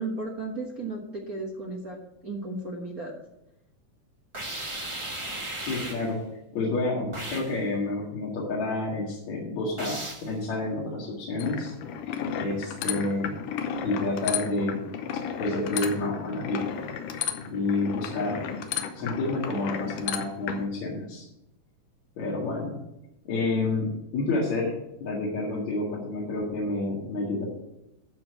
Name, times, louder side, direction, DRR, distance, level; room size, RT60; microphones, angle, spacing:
voice 1, 0.0-2.0 2.2-3.1, right 2 dB, 75° right, -1 dB, 0.8 m, -34 dB
sound 1, 4.3-6.1 7.1-7.6 9.8-10.3, right 1 dB, 55° right, 0.3 m, -35 dB
voice 2, 5.6-6.2 6.5-11.7 12.3-13.4 13.8-14.8 15.4-16.6 17.5-18.5 18.9-21.2 22.2-22.7 23.2-24.7 25.0-27.4, left 2 dB, 60° left, -5 dB, 3.2 m, -29 dB
sound 2, 11.4-20.7, left 8 dB, 80° left, 2.4 m, -33 dB
12.5 x 4.5 x 7.8 m, 0.87 s
omnidirectional pair, 3.7 m